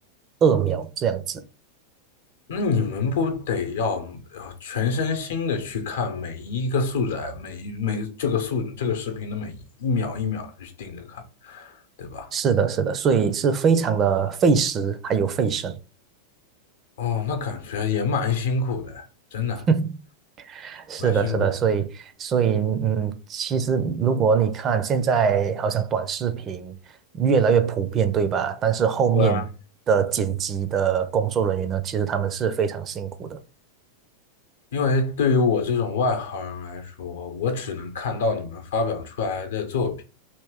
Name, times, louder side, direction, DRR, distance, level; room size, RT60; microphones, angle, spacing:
voice 1, 0.4-1.4 12.3-15.7 19.7-20.0 20.4-26.8 27.1-29.4 29.9-33.4, right 6 dB, 30° right, 0.4 m, -22 dB
voice 2, 2.5-12.3 17.0-19.1 19.3-19.7 21.0-21.5 29.1-29.5 34.7-40.0, left 4 dB, 60° left, 0.7 m, -26 dB
2.9 x 2.8 x 3.5 m
figure-of-eight pair, 90°, 0 cm